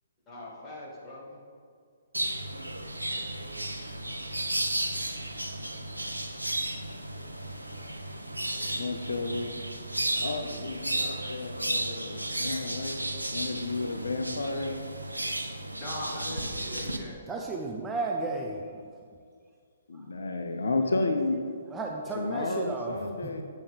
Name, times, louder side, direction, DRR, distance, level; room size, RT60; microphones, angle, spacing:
voice 1, 0.3-1.4 8.6-9.0 15.8-17.2, left 1 dB, 20° left, -6 dB, 2.0 m, -41 dB
sound 1, 2.1-17.0, right 1 dB, 85° right, 0.7 m, -34 dB
voice 2, 8.8-9.5 10.2-14.8 19.9-21.4 22.1-23.4, left 3 dB, 65° left, 5 dB, 0.7 m, -32 dB
voice 3, 17.3-18.7 21.7-22.9, right 3 dB, 15° right, 0 dB, 0.5 m, -33 dB
9.2 x 6.9 x 3.4 m, 2.1 s
figure-of-eight pair, 125°, 0 cm